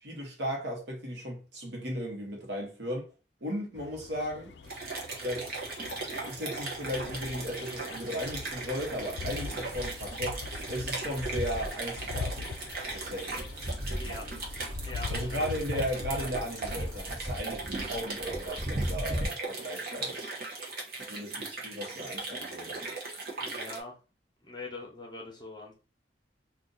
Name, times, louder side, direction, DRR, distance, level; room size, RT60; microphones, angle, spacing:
voice 1, 0.0-3.1 3.4-4.5 5.2-5.6 5.9-10.4 10.7-12.5 12.9-13.4 15.1-20.3 21.1-22.8, equal, 80° right, 1.1 m, -36 dB
sound 1, 3.7-17.0, left 4 dB, 70° left, 0.3 m, -42 dB
sound 2, 4.6-23.8, right 3 dB, 55° right, 0.9 m, -38 dB
sound 3, 6.8-19.2, equal, 15° right, 0.9 m, -40 dB
voice 2, 14.9-15.5 23.4-24.0 24.4-25.7, left 2 dB, 25° left, 0.9 m, -42 dB
2.7 x 2.5 x 3.8 m
head